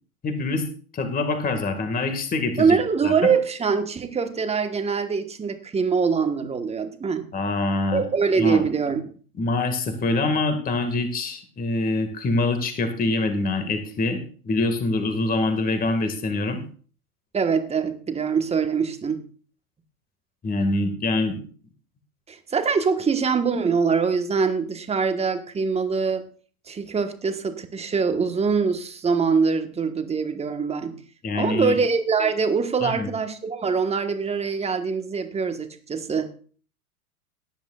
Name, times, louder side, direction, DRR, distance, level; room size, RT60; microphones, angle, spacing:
voice 1, 0.2-0.6 0.9-2.8 3.0-3.3 7.3-8.0 8.4-8.6 9.4-14.2 14.4-16.6 20.4-21.4 31.2-31.8 32.8-33.1, left 2 dB, 20° left, 7 dB, 2.0 m, -25 dB
voice 2, 2.6-7.3 7.9-9.0 17.3-19.2 22.3-26.2 26.7-30.9 31.3-36.3, right 5 dB, 15° right, 7 dB, 1.4 m, -23 dB
18.0 x 10.5 x 2.4 m, 0.43 s
hypercardioid pair, 100°, 44 cm